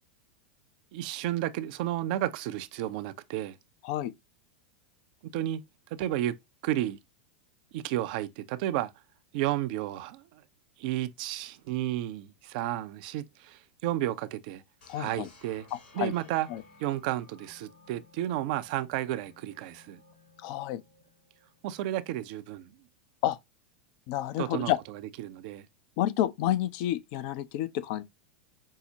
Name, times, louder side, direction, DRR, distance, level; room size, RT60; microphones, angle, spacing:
voice 1, 0.9-3.6 5.2-5.6 5.9-6.4 6.6-7.0 7.7-8.9 9.3-10.2 10.8-14.6 15.0-15.7 15.9-16.5 16.8-20.0 21.6-22.7 24.4-25.7, right 13 dB, 55° right, 0.4 m, -32 dB
sound 1, 14.8-21.7, left 3 dB, 75° left, 1.5 m, -57 dB
voice 2, 14.9-15.3 16.0-16.1 16.5-16.6 20.4-20.8 23.2-23.4 24.1-24.8 26.0-28.0, left 13 dB, 55° left, 0.5 m, -29 dB
5.5 x 2.0 x 2.7 m
hypercardioid pair, 95°, 5 cm